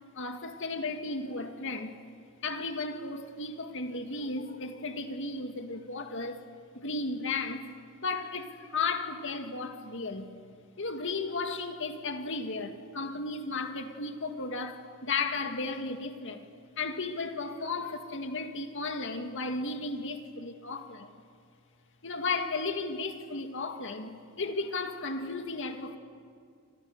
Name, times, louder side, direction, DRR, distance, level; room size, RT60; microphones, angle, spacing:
voice 1, 0.1-2.0 2.4-6.4 6.7-7.7 8.0-10.3 10.8-16.4 16.8-21.1 22.0-26.0, left 3 dB, 60° left, 2.1 m, -34 dB
29.0 x 26.0 x 6.8 m
head